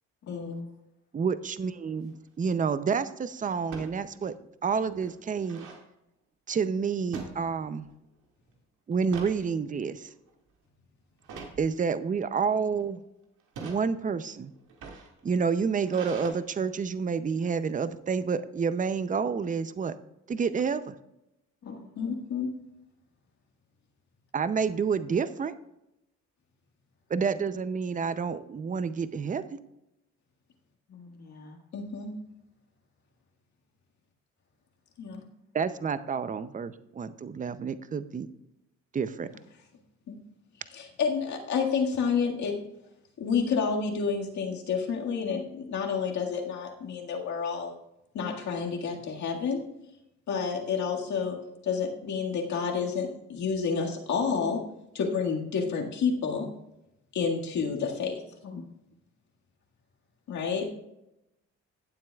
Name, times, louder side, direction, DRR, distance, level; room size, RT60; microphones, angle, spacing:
voice 1, 0.3-0.7 21.6-22.1 30.9-31.6 58.4-58.7, left 4 dB, 55° left, -3 dB, 1.7 m, -43 dB
voice 2, 1.1-4.3 4.6-5.7 6.5-7.9 8.9-10.1 11.6-13.0 13.6-14.5 15.2-19.9 20.3-20.9 24.3-25.5 27.1-29.6 35.5-38.3 38.9-39.3, right 6 dB, 25° right, 13 dB, 0.6 m, -29 dB
sound 1, 1.9-2.2 3.6-3.9 4.4-4.5 4.8-5.8 7.1-7.9 8.3-8.5 8.9-9.4 10.0-10.3 11.2-11.6 12.4-12.8 13.4-13.8 14.6-16.3, right 4 dB, 80° right, 2.1 m, -43 dB
voice 3, 22.0-22.5 31.7-32.1 35.0-35.2 40.1-40.2 40.7-42.6 43.2-47.7 48.1-49.6 50.3-51.4 51.6-54.6 54.9-56.5 57.1-58.2 60.3-60.7, left 5 dB, 70° left, 0 dB, 1.9 m, -29 dB
17.5 x 7.5 x 2.4 m, 0.87 s
cardioid pair, 90°, 30 cm